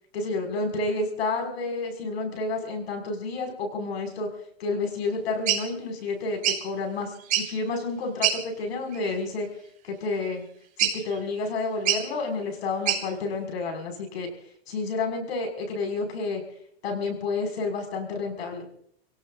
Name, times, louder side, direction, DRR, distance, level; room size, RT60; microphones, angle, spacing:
voice 1, 0.1-4.3 4.6-9.5 9.8-10.4 10.8-14.3 14.7-16.4 16.8-18.6, left 3 dB, 75° left, 3 dB, 6.2 m, -30 dB
sound 1, 5.5-5.6 6.4-6.6 7.2-7.6 8.2-8.4 8.9-9.2 10.8-11.2 11.9-12.0 12.9-13.0, right 10 dB, 25° right, 4.3 m, -25 dB
29.5 x 17.5 x 2.7 m, 0.66 s
supercardioid pair, 160°, 31 cm